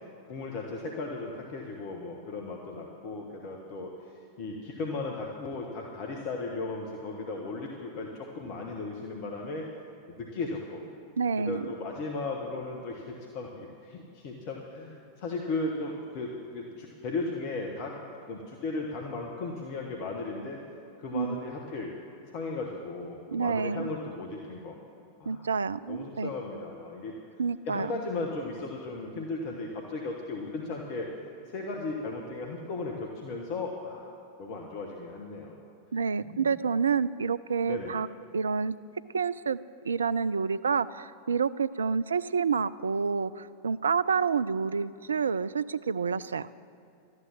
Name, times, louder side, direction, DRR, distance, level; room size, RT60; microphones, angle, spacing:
voice 1, 0.3-3.9 4.4-9.7 10.1-10.8 11.4-18.0 18.3-20.6 21.0-21.9 22.3-24.8 25.2-25.5 25.9-27.1 27.7-31.1 31.5-34.1 34.4-35.6 36.2-36.6 37.6-37.9, left 3 dB, 45° left, 0 dB, 1.3 m, -36 dB
voice 2, 11.2-11.7 21.1-21.4 23.3-23.9 25.3-26.3 27.4-27.9 35.9-38.1 38.3-38.7 39.1-39.6 39.8-46.5, right 5 dB, 70° right, 16 dB, 0.3 m, -28 dB
13.0 x 9.8 x 7.5 m, 2.7 s
figure-of-eight pair, 90°, 0 cm